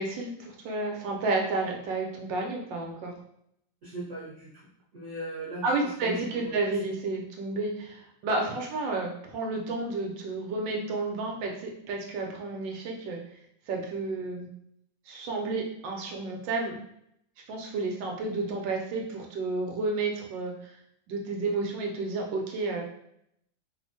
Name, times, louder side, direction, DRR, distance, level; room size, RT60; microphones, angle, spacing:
voice 1, 0.0-3.1 5.6-13.2 13.7-14.5 15.1-16.8 17.5-20.7 21.1-22.8, right 3 dB, 75° right, 0 dB, 1.2 m, -31 dB
voice 2, 3.8-6.7, right 1 dB, 50° right, -9 dB, 1.1 m, -39 dB
3.3 x 2.1 x 2.6 m, 0.74 s
omnidirectional pair, 2.2 m